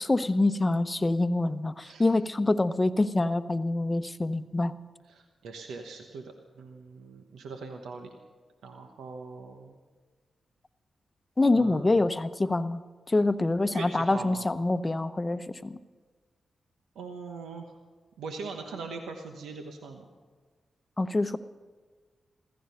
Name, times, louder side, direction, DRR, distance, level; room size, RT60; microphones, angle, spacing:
voice 1, 0.0-4.7 11.4-12.8 13.1-15.8 21.0-21.4, left 2 dB, 30° left, 12 dB, 0.8 m, -26 dB
voice 2, 1.8-2.1 5.1-8.1 8.6-9.7 11.5-12.0 13.7-14.4 16.9-17.7 18.2-20.0, right 4 dB, 85° right, 4 dB, 1.0 m, -41 dB
15.0 x 15.0 x 5.6 m, 1.4 s
supercardioid pair, 45°, 0 cm